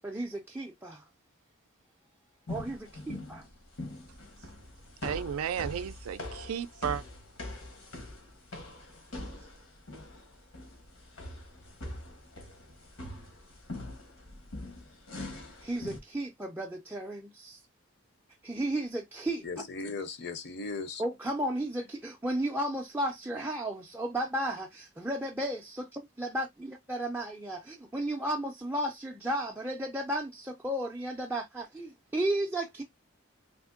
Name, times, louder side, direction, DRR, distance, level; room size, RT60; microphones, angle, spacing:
voice 1, 0.0-1.0 2.5-3.4 15.6-17.6 18.4-19.5 21.0-32.8, right 1 dB, 10° right, 0.3 m, -34 dB
sound 1, 2.5-16.0, left 1 dB, 85° left, 1.0 m, -43 dB
voice 2, 5.0-7.0, right 8 dB, 90° right, 0.4 m, -33 dB
voice 3, 19.4-21.0, left 3 dB, 50° left, 0.5 m, -37 dB
3.5 x 2.5 x 2.4 m
head